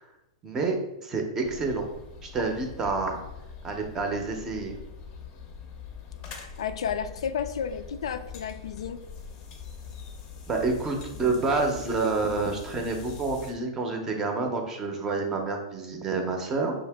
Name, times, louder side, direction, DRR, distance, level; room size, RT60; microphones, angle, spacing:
voice 1, 0.4-1.9 2.2-3.2 3.6-4.8 10.5-16.7, right 3 dB, 15° right, 3 dB, 0.6 m, -28 dB
sound 1, 1.4-13.5, left 6 dB, 30° left, 0.6 m, -43 dB
voice 2, 6.6-9.0, left 7 dB, 90° left, 10 dB, 0.4 m, -32 dB
5.5 x 2.8 x 3.4 m, 0.91 s
supercardioid pair, 165°, 3 cm